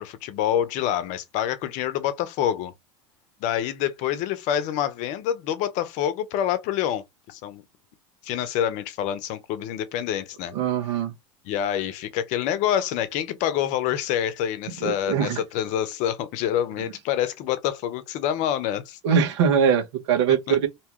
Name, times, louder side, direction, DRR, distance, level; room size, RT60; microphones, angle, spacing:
voice 1, 0.0-2.7 3.4-7.6 8.2-10.5 11.4-19.0 20.5-20.6, left 10 dB, 55° left, 0.7 m, -27 dB
voice 2, 10.5-11.1 14.8-15.4 19.0-20.7, right 7 dB, 75° right, 1.0 m, -22 dB
2.8 x 2.3 x 2.9 m
hypercardioid pair, 100°, 15 cm